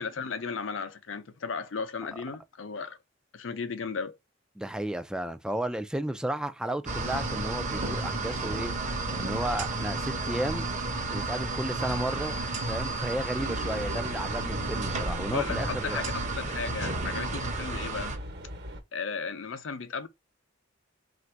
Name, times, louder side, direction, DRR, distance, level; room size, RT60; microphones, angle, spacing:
voice 1, 0.0-3.0 3.3-4.2 15.3-18.1 18.9-20.1, left 5 dB, 70° left, 0.6 m, -35 dB
voice 2, 4.6-8.7 9.2-10.7 11.1-12.4 12.7-16.0, right 1 dB, 5° right, 0.3 m, -33 dB
sound 1, 6.9-18.2, right 3 dB, 40° right, 0.8 m, -32 dB
sound 2, 13.4-18.8, equal, 55° right, 1.1 m, -39 dB
3.3 x 2.6 x 4.4 m
head